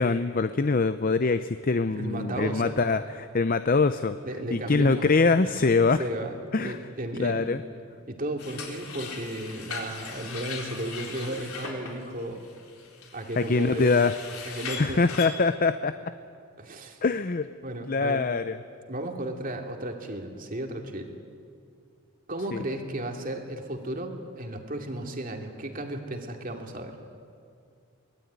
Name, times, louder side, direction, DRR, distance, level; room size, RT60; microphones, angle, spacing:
voice 1, 0.0-4.2 4.5-6.0 6.5-6.8 7.2-7.6 13.4-14.1 14.8-16.1 17.0-17.5 17.9-18.6 22.5-22.6, left 4 dB, 40° left, 11 dB, 0.6 m, -24 dB
voice 2, 1.9-2.8 4.2-5.1 6.0-7.5 8.1-12.4 13.1-13.9 14.5-15.1 16.6-17.0 17.6-18.2 18.9-21.1 22.3-27.0, right 1 dB, 40° right, 3 dB, 2.5 m, -34 dB
sound 1, 8.4-15.3, left 5 dB, 85° left, 4.0 m, -39 dB
24.0 x 19.5 x 9.4 m, 2.3 s
head